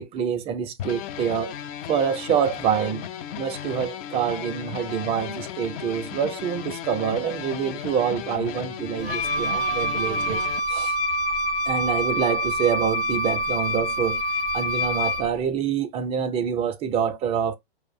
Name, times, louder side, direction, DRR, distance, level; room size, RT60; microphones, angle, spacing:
voice 1, 0.0-1.6 1.9-3.1 3.3-11.0 11.7-14.2 14.5-17.5, right 7 dB, 20° right, 0.4 m, -26 dB
sound 1, 0.8-10.6, left 10 dB, 40° left, 0.4 m, -35 dB
Wind instrument woodwind instrument, 9.0-15.3, equal, 60° left, 0.8 m, -26 dB
4.6 x 2.0 x 2.5 m
figure-of-eight pair, 105°, 31 cm